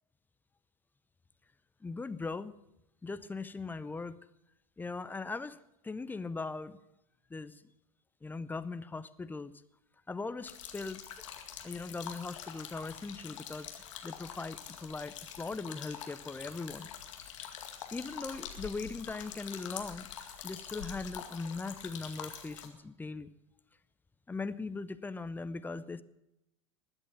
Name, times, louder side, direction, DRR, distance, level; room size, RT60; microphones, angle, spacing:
voice 1, 1.8-2.5 3.0-4.2 4.8-5.6 5.8-6.8 7.3-7.5 8.2-9.5 10.1-11.0 11.6-13.7 14.0-16.9 17.9-20.1 20.4-23.3 24.3-26.0, left 3 dB, 10° left, 14 dB, 0.6 m, -39 dB
sound 1, 10.4-22.7, left 8 dB, 70° left, 2.1 m, -45 dB
20.5 x 8.1 x 7.2 m, 0.86 s
figure-of-eight pair, 85°, 17 cm